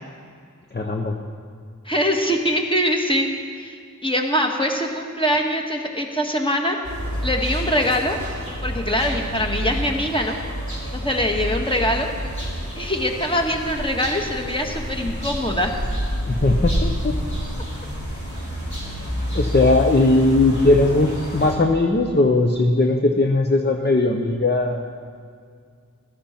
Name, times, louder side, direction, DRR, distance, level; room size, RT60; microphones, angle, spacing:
voice 1, 0.7-1.2 16.3-17.1 19.3-24.8, left 2 dB, 35° left, 2 dB, 0.8 m, -19 dB
voice 2, 1.8-3.3 3.6-6.8 7.2-8.2 8.6-10.4 10.9-12.1 12.7-15.8, equal, 15° left, 1 dB, 1.6 m, -23 dB
sound 1, 6.8-21.5, equal, 65° left, 4.2 m, -28 dB
15.5 x 13.0 x 4.4 m, 2.2 s
wide cardioid pair, 45°, 32 cm